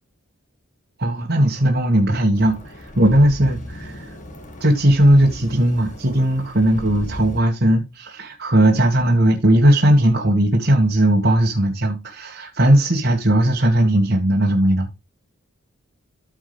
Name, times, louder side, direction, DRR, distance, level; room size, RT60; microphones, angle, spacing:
voice 1, 1.0-4.1 4.6-14.9, right 1 dB, 50° right, 2.0 m, -17 dB
sound 1, 2.3-7.4, equal, 35° left, 2.2 m, -36 dB
13.5 x 5.3 x 3.5 m
head